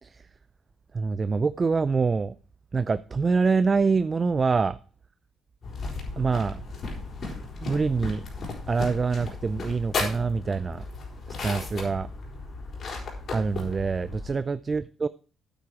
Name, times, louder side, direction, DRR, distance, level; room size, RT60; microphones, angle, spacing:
voice 1, 0.9-2.4 2.7-4.8 6.2-6.6 7.6-8.2 8.7-10.8 11.4-12.1 13.3-15.1, right 4 dB, 35° right, 0.4 m, -25 dB
sound 1, 5.6-14.3, left 3 dB, 55° left, 4.5 m, -35 dB
9.2 x 8.6 x 4.8 m
cardioid pair, 90°, 0 cm